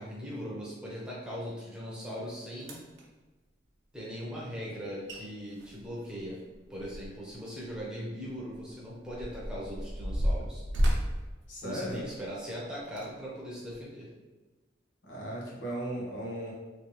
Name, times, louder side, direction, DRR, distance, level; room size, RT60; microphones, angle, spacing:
voice 1, 0.0-2.8 3.9-6.4 6.7-10.6 11.6-14.1, equal, 5° right, -6 dB, 0.8 m, -39 dB
sound 1, 2.1-2.2 2.6-3.0 4.8-4.9 5.1-5.2 5.5-7.3 7.7-7.8 8.5-12.3 12.9-13.1 13.7-13.8, equal, 80° right, 0.7 m, -32 dB
voice 2, 11.5-12.0 15.0-16.5, right 1 dB, 85° left, -5 dB, 1.2 m, -36 dB
3.2 x 3.0 x 3.1 m, 1.2 s
head